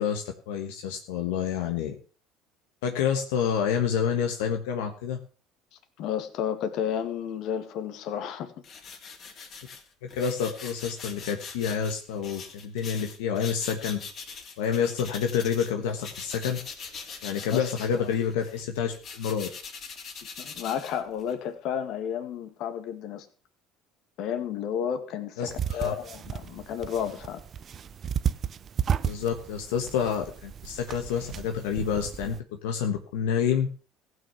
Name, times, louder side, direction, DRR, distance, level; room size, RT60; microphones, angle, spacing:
voice 1, 0.0-1.9 2.8-5.2 10.0-14.0 14.6-16.6 17.2-19.5 25.4-26.0 29.0-33.7, left 7 dB, 90° left, 4 dB, 1.3 m, -28 dB
voice 2, 6.0-8.5 17.5-17.7 17.9-18.2 20.4-23.3 24.2-27.4, left 8 dB, 65° left, 9 dB, 1.9 m, -32 dB
sound 1, 8.6-15.7 16.0-21.4, left 5 dB, 50° left, 3.0 m, -42 dB
sound 2, 25.5-32.4, right 8 dB, 40° right, 0.6 m, -33 dB
15.5 x 6.2 x 6.9 m, 0.39 s
supercardioid pair, 95°, 0 cm